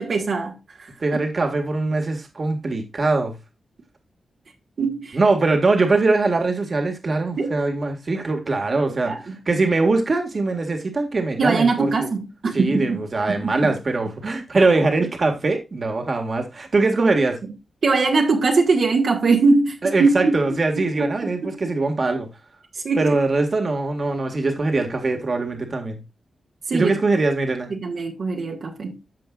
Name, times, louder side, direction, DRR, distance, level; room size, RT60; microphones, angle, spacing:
voice 1, 0.0-0.9 4.8-5.2 7.4-7.6 8.9-9.4 11.4-13.7 17.8-20.6 21.0-21.5 22.7-23.2 26.7-26.9 27.7-29.0, right 3 dB, 65° right, 1.9 m, -22 dB
voice 2, 1.0-3.3 5.1-12.1 12.5-17.4 19.8-22.3 23.0-26.0 26.7-27.7, right 3 dB, 50° right, 1.9 m, -22 dB
14.5 x 5.4 x 2.4 m
cardioid pair, 70°, 0 cm